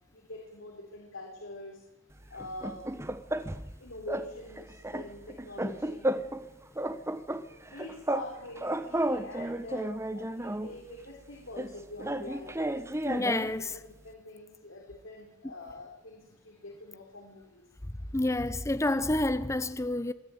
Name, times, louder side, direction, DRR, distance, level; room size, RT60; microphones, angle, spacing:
voice 1, 0.1-1.8 2.3-3.0 3.8-6.1 7.4-12.7 13.4-17.6, left 2 dB, 80° left, 4.3 m, -45 dB
sound 1, 2.4-3.7 4.1-4.3 4.6-6.5 6.8-8.3 8.6-10.7 11.6-13.6, right 1 dB, 15° right, 1.1 m, -33 dB
voice 2, 13.0-13.8 15.4-15.5 18.1-20.1, left 2 dB, 15° left, 0.7 m, -29 dB
24.0 x 14.0 x 9.4 m
head